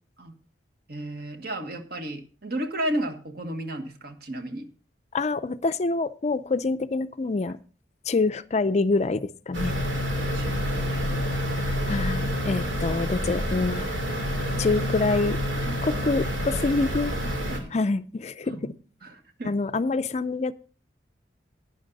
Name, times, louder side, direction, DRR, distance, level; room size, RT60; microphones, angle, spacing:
voice 1, 0.9-4.6 10.3-11.3 14.5-15.2 15.7-17.8 18.4-18.7 19.0-19.5, right 1 dB, 55° right, 7 dB, 1.5 m, -35 dB
voice 2, 5.1-7.6 8.1-9.7 11.9-13.9 14.6-15.4 15.8-17.1 17.7-18.7 19.4-20.5, left 3 dB, 35° left, 13 dB, 0.4 m, -26 dB
sound 1, 9.5-17.6, equal, 90° right, 2.6 m, -28 dB
11.5 x 9.7 x 4.0 m, 0.39 s
head